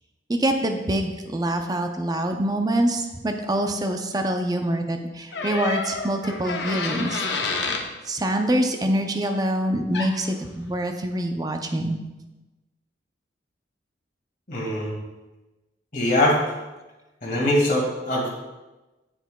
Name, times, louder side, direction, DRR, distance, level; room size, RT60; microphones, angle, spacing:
voice 1, 0.3-7.3 8.1-12.0, right 1 dB, 20° right, 5 dB, 0.5 m, -25 dB
sound 1, 5.3-7.9 9.9-10.1, left 4 dB, 70° left, 0.8 m, -28 dB
voice 2, 14.5-15.0 15.9-16.4 17.2-18.3, left 1 dB, 45° left, -3 dB, 2.0 m, -22 dB
8.0 x 7.2 x 2.3 m, 1.1 s
head